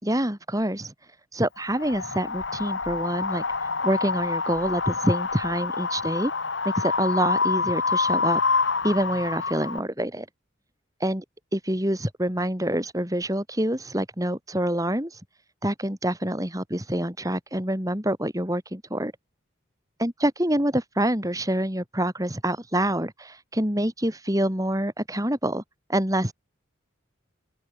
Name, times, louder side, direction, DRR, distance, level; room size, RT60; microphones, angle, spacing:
voice 1, 0.0-6.3 6.6-8.4 8.8-10.3 11.0-11.2 11.5-15.2 15.6-19.1 20.0-25.6 25.9-26.3, right 1 dB, 15° right, 4.4 m, -26 dB
Wind, 1.7-9.8, left 4 dB, 65° left, 1.7 m, -27 dB
open air
head